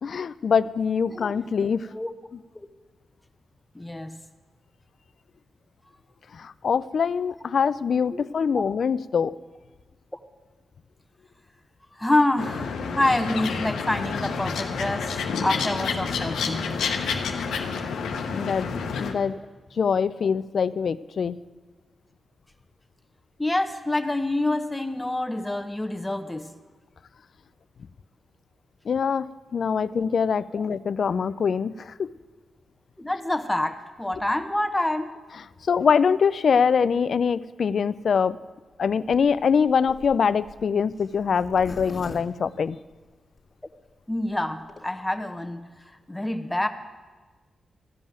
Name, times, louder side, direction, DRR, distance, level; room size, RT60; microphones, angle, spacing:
voice 1, 0.0-1.9 6.3-9.4 18.3-18.7 19.0-19.4 19.8-21.4 28.9-29.3 29.5-32.1 35.7-38.4 38.8-42.8, left 6 dB, 65° left, 17 dB, 0.4 m, -23 dB
voice 2, 3.7-4.1 8.1-8.6 11.9-16.7 19.3-19.4 23.4-26.5 30.5-30.6 33.0-35.1 44.1-46.7, left 1 dB, 15° left, 8 dB, 1.0 m, -27 dB
sound 1, 12.4-19.1, left 5 dB, 85° left, 0.9 m, -29 dB
Zipper (clothing), 39.1-43.4 43.9-44.0 44.1-44.2 44.5-44.8, left 2 dB, 45° left, 1.8 m, -42 dB
14.0 x 5.4 x 9.2 m, 1.3 s
supercardioid pair, 45°, 0 cm